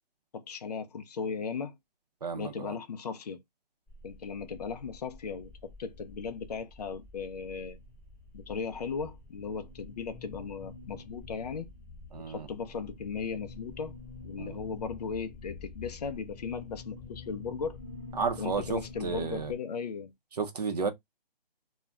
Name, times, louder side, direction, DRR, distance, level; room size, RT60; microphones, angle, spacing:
voice 1, 0.3-1.8 2.3-3.4 4.0-7.8 8.3-11.7 12.3-13.9 14.2-17.8 18.4-20.1, left 5 dB, 45° left, 0.4 m, -37 dB
voice 2, 2.2-2.7 12.1-12.5 14.4-14.6 18.2-19.5 20.4-20.9, right 5 dB, 45° right, 0.5 m, -32 dB
sound 1, 3.9-19.6, left 3 dB, 5° left, 0.9 m, -47 dB
2.3 x 2.1 x 3.5 m
hypercardioid pair, 160°, 30 cm